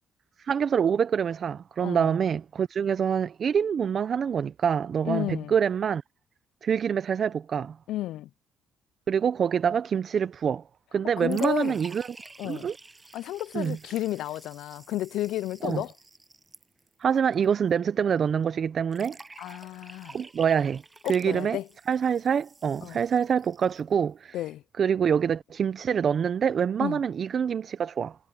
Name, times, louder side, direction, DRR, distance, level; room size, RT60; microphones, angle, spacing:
voice 1, 0.4-6.0 6.6-7.8 9.1-10.6 10.9-12.1 12.4-12.8 13.5-13.8 15.6-15.8 17.0-19.2 20.1-20.8 21.1-21.6 21.9-24.4 24.8-28.2, right 7 dB, 55° right, 0.6 m, -26 dB
voice 2, 1.8-2.2 5.0-5.5 7.9-8.3 11.2-11.8 12.4-12.7 13.1-15.9 19.4-20.2 21.0-21.7 22.8-23.0 24.3-24.6 26.8-27.0, left 14 dB, 85° left, 0.3 m, -32 dB
sound 1, 11.3-17.4 17.7-17.8 18.9-23.9, right 3 dB, 20° right, 7.6 m, -50 dB
cardioid pair, 90°, 0 cm